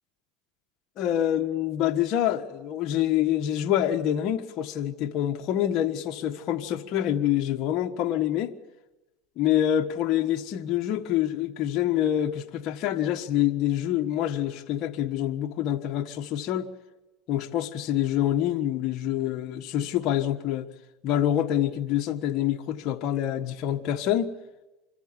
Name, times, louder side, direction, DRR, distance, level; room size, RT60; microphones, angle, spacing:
voice 1, 1.0-8.5 9.4-16.7 17.3-20.7 21.0-24.3, left 11 dB, 55° left, 1.5 m, -26 dB
25.5 x 14.0 x 9.9 m
supercardioid pair, 115°, 0 cm